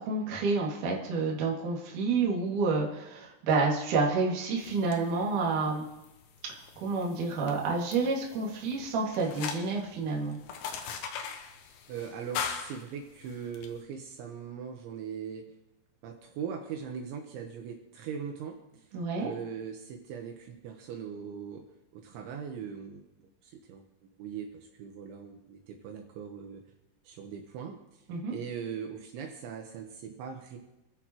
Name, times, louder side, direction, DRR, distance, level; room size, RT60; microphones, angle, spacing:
voice 1, 0.0-5.8 6.8-10.4 18.9-19.3 28.1-28.3, right 4 dB, 50° right, -2 dB, 3.0 m, -29 dB
sound 1, 4.6-13.7, left 7 dB, 75° left, 3.0 m, -42 dB
voice 2, 11.9-15.5 16.0-18.9 19.2-21.6 21.9-23.0 23.4-23.8 24.2-26.6 27.0-28.0 28.3-30.6, right 7 dB, 75° right, 2 dB, 3.3 m, -40 dB
28.5 x 10.5 x 3.0 m, 0.97 s
omnidirectional pair, 5.7 m